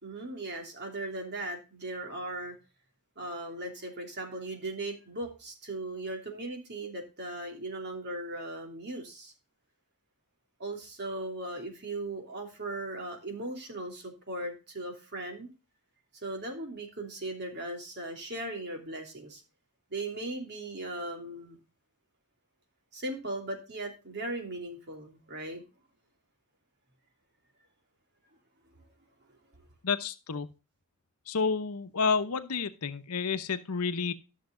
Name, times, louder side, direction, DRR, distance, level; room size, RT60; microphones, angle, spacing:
voice 1, 0.0-2.5 3.2-9.3 10.6-15.5 16.1-19.4 19.9-21.6 22.9-25.6 28.7-28.8, right 2 dB, 50° right, 3 dB, 3.0 m, -38 dB
voice 2, 29.8-30.5 31.3-34.1, left 5 dB, 80° left, 10 dB, 0.9 m, -30 dB
13.0 x 6.7 x 3.8 m, 0.30 s
head